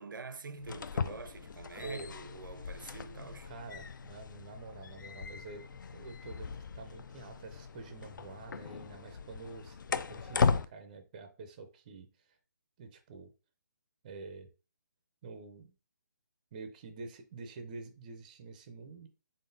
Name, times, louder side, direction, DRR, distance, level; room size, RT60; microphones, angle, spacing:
voice 1, 0.0-3.5, right 4 dB, 85° right, 0.5 m, -46 dB
sound 1, 0.6-10.7, left 5 dB, 75° left, 0.4 m, -37 dB
voice 2, 3.5-12.4 12.8-13.3 14.0-14.5 15.2-15.7 16.5-19.1, right 3 dB, 25° right, 0.4 m, -47 dB
3.8 x 3.7 x 2.6 m
hypercardioid pair, 165°, 11 cm